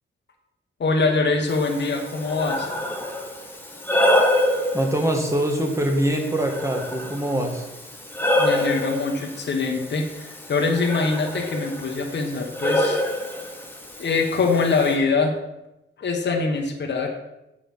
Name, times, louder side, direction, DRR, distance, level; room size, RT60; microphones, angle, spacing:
voice 1, 0.8-2.7 8.4-13.0 14.0-15.3 16.0-17.1, left 4 dB, 60° left, 1 dB, 1.2 m, -23 dB
Breathing, 1.5-15.0, left 1 dB, 10° left, 1.1 m, -27 dB
voice 2, 4.7-7.7, right 1 dB, 15° right, 2 dB, 1.5 m, -23 dB
7.5 x 6.7 x 5.4 m, 0.92 s
wide cardioid pair, 145°, 21 cm